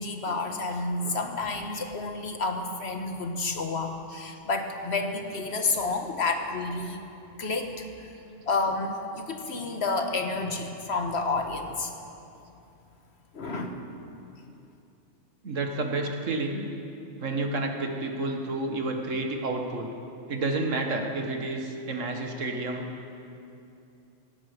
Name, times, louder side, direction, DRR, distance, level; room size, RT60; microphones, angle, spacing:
voice 1, 0.0-7.0 7.4-8.1 8.5-11.9 13.3-13.8, left 3 dB, 60° left, 4 dB, 1.5 m, -30 dB
voice 2, 15.4-16.7 17.2-19.9 20.3-22.9, right 2 dB, 90° right, 3 dB, 1.9 m, -30 dB
17.0 x 16.5 x 5.0 m, 2.7 s
omnidirectional pair, 1.3 m